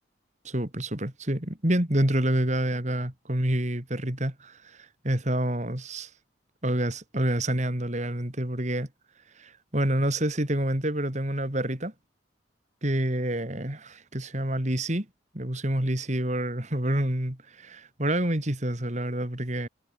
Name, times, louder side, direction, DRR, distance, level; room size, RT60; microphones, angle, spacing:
voice 1, 0.4-6.1 6.6-8.9 9.3-11.9 12.8-15.1 15.3-19.7, right 1 dB, 35° right, 2.9 m, -28 dB
head